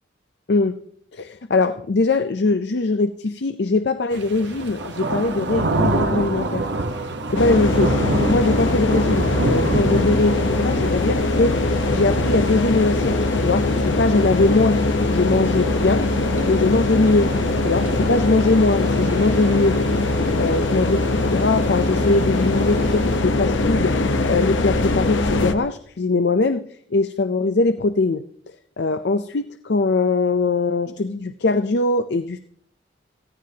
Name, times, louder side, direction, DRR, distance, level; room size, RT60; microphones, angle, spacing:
voice 1, 1.1-6.7 7.0-8.0 8.3-14.8 15.1-16.1 16.5-17.3 17.6-32.4, left 3 dB, 60° left, 11 dB, 0.5 m, -21 dB
sound 1, 4.1-23.2, right 2 dB, 65° right, 1.1 m, -29 dB
sound 2, 7.4-25.5, left 2 dB, 75° left, 0.9 m, -21 dB
17.0 x 15.0 x 2.8 m, 0.63 s
head